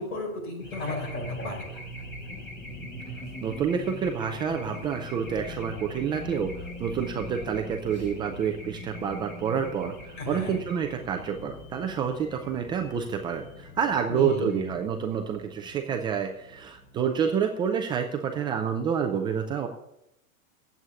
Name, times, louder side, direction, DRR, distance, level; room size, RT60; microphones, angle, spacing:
voice 1, 0.0-1.6 10.2-10.5 14.1-14.7, left 3 dB, 90° left, 0 dB, 5.3 m, -34 dB
Race car auto racing / Alarm, 0.6-17.6, left 1 dB, 25° left, 4.3 m, -41 dB
voice 2, 3.4-6.5 6.8-19.7, right 7 dB, 10° right, 4 dB, 0.3 m, -28 dB
9.9 x 8.0 x 7.0 m, 0.82 s
hypercardioid pair, 135°, 42 cm